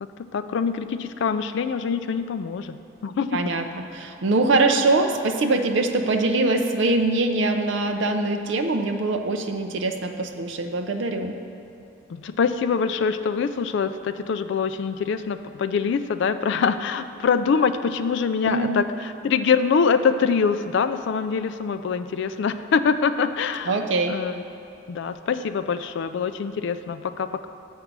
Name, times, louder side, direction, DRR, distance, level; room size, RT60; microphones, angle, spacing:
voice 1, 0.0-2.8 3.0-3.4 12.1-23.8 24.1-24.4 24.9-27.5, left 6 dB, 60° left, 11 dB, 0.3 m, -24 dB
voice 2, 3.3-3.6 3.9-11.3 18.4-18.8 23.7-24.2, right 2 dB, 60° right, 5 dB, 0.5 m, -23 dB
7.2 x 5.2 x 5.9 m, 2.7 s
head